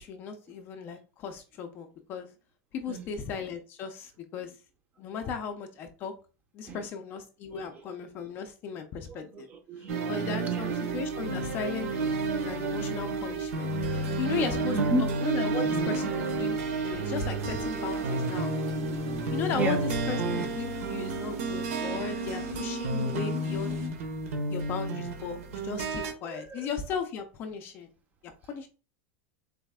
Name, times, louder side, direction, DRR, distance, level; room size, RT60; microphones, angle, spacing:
voice 1, 0.0-2.3 2.7-4.5 5.0-6.1 6.5-9.5 10.1-14.8 15.2-18.5 19.3-23.8 24.5-27.9 28.2-28.7, left 6 dB, 25° left, 0.4 m, -36 dB
voice 2, 9.3-10.1 10.5-10.8 12.4-12.7 13.0-13.1 13.9-14.0 14.3-15.2 19.5-19.8 21.2-21.4 26.2-26.7, right 2 dB, 20° right, 0.6 m, -34 dB
sound 1, 9.9-26.1, right 3 dB, 70° right, 1.2 m, -31 dB
sound 2, 17.4-23.9, left 1 dB, 90° right, 1.8 m, -40 dB
4.0 x 3.2 x 3.5 m
supercardioid pair, 175°, 8 cm